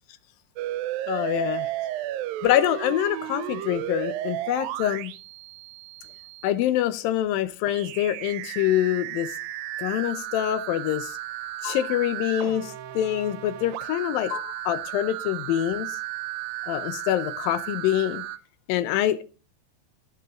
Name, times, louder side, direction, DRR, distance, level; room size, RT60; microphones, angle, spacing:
sound 1, 0.6-6.5 7.7-18.4, right 14 dB, 85° right, 2.4 m, -34 dB
voice 1, 1.1-1.7 2.4-5.1 6.4-9.3 9.8-11.2 11.6-15.9 16.7-18.3 18.7-19.2, left 12 dB, 85° left, 2.5 m, -25 dB
11.0 x 7.7 x 3.7 m
omnidirectional pair, 4.1 m